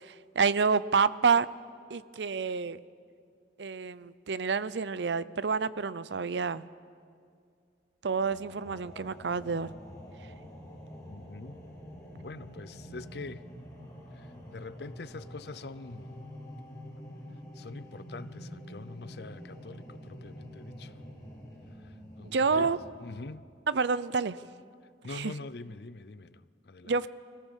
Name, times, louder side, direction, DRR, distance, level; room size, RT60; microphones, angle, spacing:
voice 1, 0.0-1.5 1.9-2.8 3.6-6.6 8.0-9.7 22.2-22.8 23.7-24.4 25.1-25.3 26.8-27.1, right 5 dB, 80° right, 0.6 m, -28 dB
sound 1, 8.1-23.1, equal, 20° left, 5.7 m, -47 dB
voice 2, 11.1-11.6 12.2-13.4 14.1-16.1 17.5-20.9 21.8-22.7 23.0-23.4 25.0-26.9, left 3 dB, 65° left, 0.6 m, -44 dB
24.5 x 17.0 x 7.3 m
head